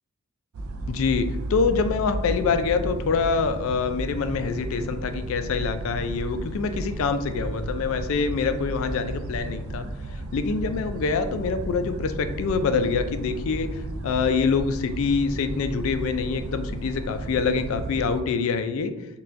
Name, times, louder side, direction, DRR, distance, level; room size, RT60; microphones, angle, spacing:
sound 1, 0.5-18.2, right 1 dB, 70° right, 0.4 m, -33 dB
voice 1, 0.9-9.9 10.3-18.9, left 5 dB, 65° left, 9 dB, 0.3 m, -25 dB
5.5 x 2.3 x 2.5 m, 1.0 s
head